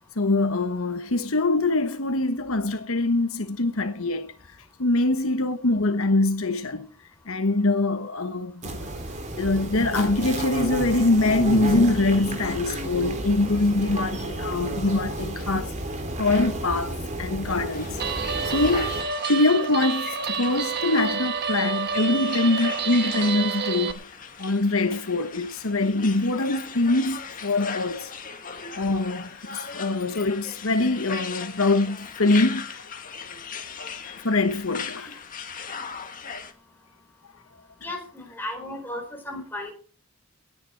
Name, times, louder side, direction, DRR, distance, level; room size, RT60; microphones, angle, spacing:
voice 1, 0.2-4.3 4.8-6.9 7.3-8.8 9.4-15.7 16.2-18.0 18.5-18.9 19.3-24.0 24.4-28.1 28.8-32.8 34.0-35.1 37.8-37.9, left 2 dB, 70° left, 1.2 m, -24 dB
sound 1, 8.6-19.0, right 1 dB, 35° right, 3.2 m, -31 dB
sound 2, 17.7-36.5, left 6 dB, 40° left, 1.8 m, -39 dB
Guitar, 18.0-23.9, right 5 dB, 50° right, 1.2 m, -29 dB
voice 2, 37.8-39.7, left 1 dB, 10° left, 4.4 m, -35 dB
19.0 x 9.9 x 4.6 m
head